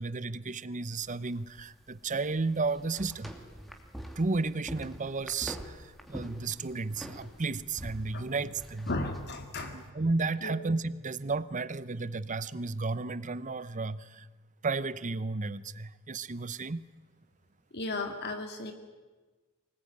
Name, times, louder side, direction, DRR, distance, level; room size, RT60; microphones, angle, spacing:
voice 1, 0.0-3.4 4.2-8.9 9.7-14.3 14.6-16.8, right 3 dB, 35° right, 17 dB, 0.8 m, -33 dB
sound 1, 1.0-9.9, equal, ahead, 2.5 m, -46 dB
voice 2, 8.9-9.8 10.4-10.5 17.7-18.7, left 2 dB, 50° left, 5 dB, 2.2 m, -34 dB
25.0 x 20.0 x 9.5 m, 1.3 s
head